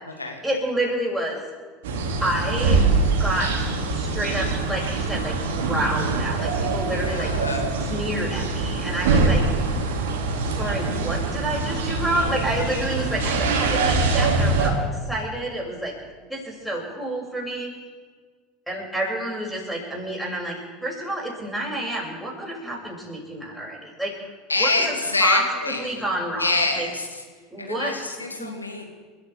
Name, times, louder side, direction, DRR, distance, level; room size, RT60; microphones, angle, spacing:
voice 1, 0.4-1.4 2.2-2.8 3.2-3.6 3.9-7.3 7.8-9.7 10.5-16.0 16.3-17.7 18.7-24.1 24.6-25.5 25.8-26.9 27.5-27.9 28.4-28.5, right 1 dB, 5° right, -3 dB, 6.6 m, -29 dB
sound 1, 1.8-14.7, right 3 dB, 60° right, 2.5 m, -24 dB
voice 2, 6.8-7.7 24.5-26.0 26.4-27.2 27.6-28.8, left 3 dB, 85° left, 1 dB, 2.4 m, -26 dB
29.5 x 14.0 x 3.5 m, 1.5 s
figure-of-eight pair, 75°, 0 cm